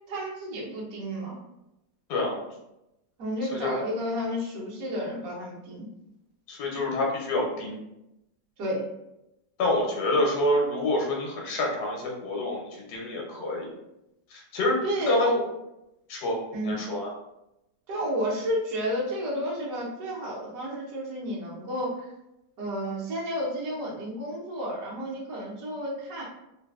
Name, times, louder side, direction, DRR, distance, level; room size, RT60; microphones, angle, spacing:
voice 1, 0.1-1.4 3.2-5.9 8.6-8.8 14.8-15.2 16.5-16.8 17.9-22.1 22.6-26.2, equal, 60° right, -4 dB, 1.2 m, -31 dB
voice 2, 3.4-3.8 6.5-7.8 9.6-13.7 14.3-14.8 15.1-15.4 16.1-17.1, left 1 dB, 65° left, -1 dB, 1.2 m, -27 dB
3.2 x 2.7 x 2.3 m, 0.90 s
omnidirectional pair, 2.0 m